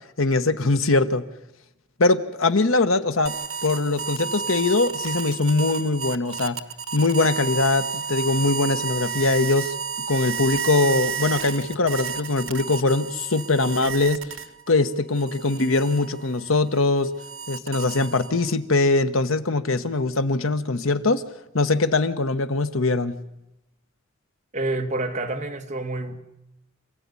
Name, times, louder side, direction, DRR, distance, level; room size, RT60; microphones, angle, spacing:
voice 1, 0.2-1.2 2.0-3.3 3.6-6.6 6.9-9.7 10.1-14.3 14.7-17.1 17.5-21.2 21.5-23.2, left 3 dB, 80° left, 1.2 m, -22 dB
sound 1, 3.3-14.7 15.2-18.5, right 7 dB, 80° right, 1.3 m, -31 dB
voice 2, 24.5-26.2, right 2 dB, 35° right, 2.1 m, -28 dB
27.5 x 16.0 x 9.7 m
head